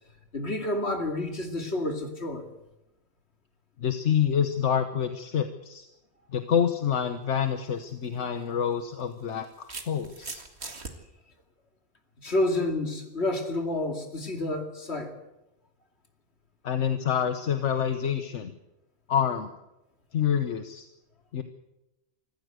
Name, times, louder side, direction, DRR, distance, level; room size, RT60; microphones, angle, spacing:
voice 1, 0.3-2.5 12.2-15.1, left 1 dB, 65° left, 5 dB, 2.8 m, -29 dB
voice 2, 3.8-5.9 6.3-10.4 16.6-18.5 19.1-19.5 20.1-20.8 21.3-21.4, left 8 dB, 80° left, 8 dB, 1.4 m, -27 dB
sound 1, 7.7-7.9 9.0-10.9, right 3 dB, 65° right, 2.3 m, -40 dB
25.5 x 14.5 x 8.0 m, 0.95 s
omnidirectional pair, 1.2 m